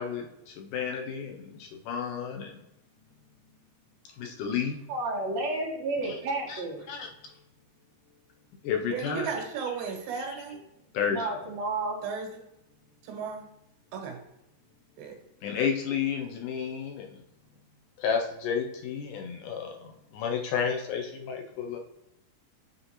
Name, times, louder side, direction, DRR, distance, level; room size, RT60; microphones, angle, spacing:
voice 1, 0.0-2.6 4.2-4.8 6.0-6.1 6.5-6.6 6.9-7.1 8.6-9.3 10.9-11.2 15.4-17.1 18.0-21.8, left 7 dB, 75° left, 3 dB, 2.1 m, -31 dB
voice 2, 4.9-6.8 11.1-12.0, right 2 dB, 55° right, -4 dB, 2.6 m, -31 dB
voice 3, 8.9-10.6 12.0-12.4 13.0-13.4 13.9-14.2 15.0-15.2, right 5 dB, 85° right, 2 dB, 2.9 m, -34 dB
7.8 x 4.2 x 2.9 m, 0.85 s
omnidirectional pair, 4.0 m